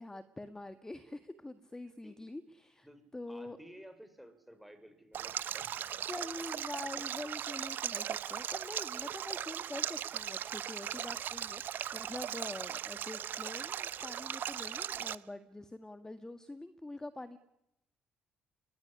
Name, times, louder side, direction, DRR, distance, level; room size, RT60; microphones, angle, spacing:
voice 1, 0.0-2.9 3.1-3.6 6.1-17.4, left 2 dB, 15° left, 11 dB, 1.7 m, -45 dB
voice 2, 2.8-6.2, equal, ahead, 9 dB, 5.4 m, -55 dB
Stream, 5.1-15.2, right 10 dB, 60° right, 0.8 m, -38 dB
22.5 x 16.5 x 10.0 m, 0.86 s
hypercardioid pair, 55°, 4 cm